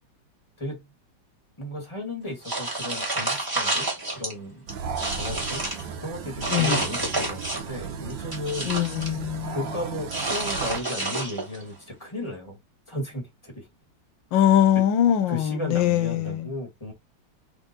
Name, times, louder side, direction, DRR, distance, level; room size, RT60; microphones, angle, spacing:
voice 1, 1.6-4.7 5.1-8.7 9.5-12.6 12.9-13.7 14.3-14.5 15.3-16.9, left 1 dB, 15° left, 1.6 m, -35 dB
sound 1, 2.4-4.3 4.7-5.8 6.4-7.8 8.1-9.2 10.1-11.6, right 2 dB, 10° right, 1.5 m, -29 dB
sound 2, 4.7-10.8, right 6 dB, 80° right, 1.4 m, -36 dB
voice 2, 6.5-6.8 8.7-9.6 14.3-16.5, left 10 dB, 80° left, 1.4 m, -22 dB
3.7 x 3.5 x 4.0 m
omnidirectional pair, 2.0 m